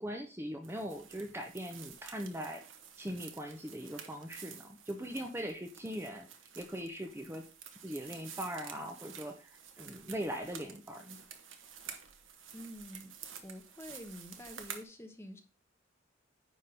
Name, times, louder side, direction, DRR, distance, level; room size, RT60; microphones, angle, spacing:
voice 1, 0.0-2.6 3.0-6.3 6.6-7.4 7.8-11.2, equal, 10° right, 4 dB, 0.8 m, -40 dB
sound 1, 0.6-14.8, right 7 dB, 75° right, 1.2 m, -50 dB
voice 2, 12.5-13.1 13.4-15.4, equal, 15° left, 5 dB, 1.1 m, -47 dB
9.9 x 3.8 x 5.1 m, 0.34 s
head